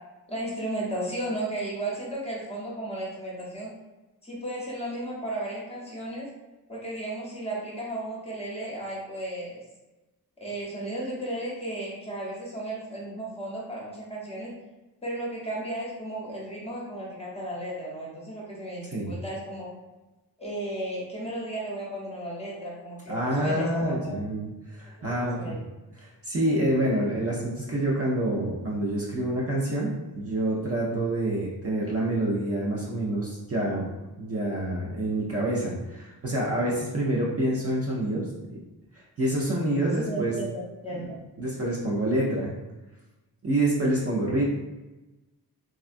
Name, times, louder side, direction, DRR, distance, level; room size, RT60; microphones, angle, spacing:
voice 1, 0.3-3.7 4.2-6.3 6.7-9.6 10.4-14.5 15.0-19.7 20.4-24.2 25.0-25.6 40.0-41.2, right 1 dB, 15° left, -5 dB, 0.8 m, -34 dB
voice 2, 23.1-25.6 26.0-29.9 30.1-33.9 34.2-38.3 39.2-40.3 40.9-41.0 41.4-42.5 43.4-44.4, right 1 dB, 40° right, -5 dB, 0.5 m, -27 dB
3.6 x 2.2 x 2.5 m, 1.1 s
wide cardioid pair, 145°, 38 cm